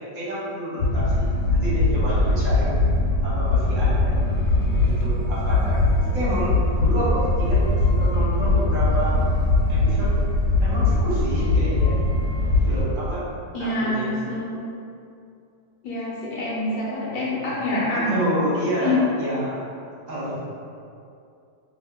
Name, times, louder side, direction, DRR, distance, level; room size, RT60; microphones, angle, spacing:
voice 1, 0.1-2.7 3.2-4.1 4.8-5.8 6.1-7.6 7.9-9.1 9.7-10.1 10.6-11.9 12.6-13.2 13.6-14.1 17.0-17.4 17.9-19.6 20.1-20.4, right 1 dB, 55° right, -8 dB, 1.1 m, -29 dB
sound 1, 0.8-12.8, left 2 dB, 70° left, 1.1 m, -21 dB
voice 2, 13.5-14.6 15.8-18.3 18.8-19.0, left 1 dB, 45° left, -7 dB, 0.7 m, -26 dB
2.7 x 2.7 x 3.6 m, 2.5 s
omnidirectional pair, 1.8 m